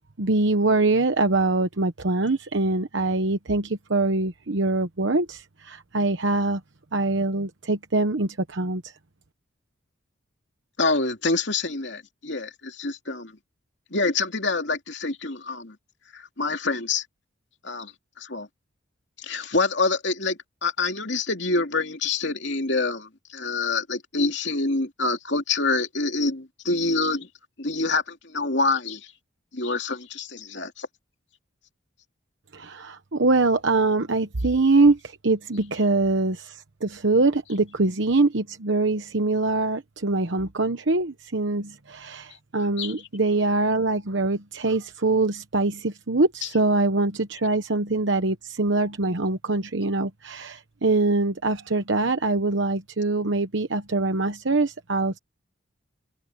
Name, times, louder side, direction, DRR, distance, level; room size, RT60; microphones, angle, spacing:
voice 1, 0.2-6.6 6.9-8.9 32.5-55.2, right 3 dB, 65° right, 1.1 m, -23 dB
voice 2, 10.8-13.3 13.9-15.8 16.1-17.0 17.6-17.9 18.2-18.5 19.2-27.3 27.6-29.1 29.5-30.9 42.8-42.9, left 3 dB, 60° left, 2.8 m, -26 dB
head